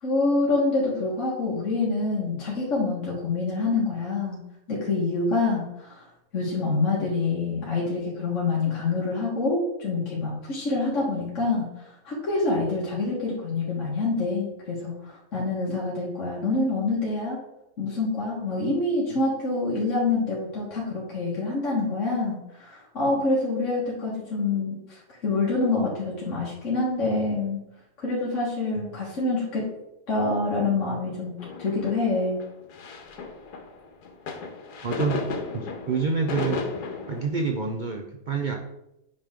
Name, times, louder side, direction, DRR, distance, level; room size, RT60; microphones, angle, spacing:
voice 1, 0.0-4.4 4.7-6.1 6.3-17.4 17.8-27.6 28.0-29.7 30.1-32.4, left 3 dB, 50° left, -5 dB, 1.9 m, -26 dB
sound 1, 31.4-37.3, left 4 dB, 85° left, 1.6 m, -34 dB
voice 2, 34.8-35.2 35.5-36.6 37.1-38.5, right 5 dB, 80° right, 2 dB, 0.4 m, -27 dB
8.8 x 5.3 x 3.6 m, 0.87 s
omnidirectional pair, 1.7 m